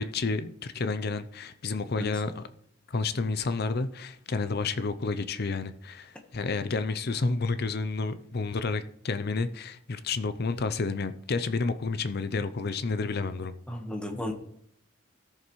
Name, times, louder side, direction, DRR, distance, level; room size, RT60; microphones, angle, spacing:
voice 1, 0.0-2.4 2.9-13.5, left 4 dB, 55° left, 0.6 m, -30 dB
voice 2, 13.7-14.3, left 1 dB, 5° left, 1.3 m, -33 dB
17.0 x 6.7 x 3.2 m
head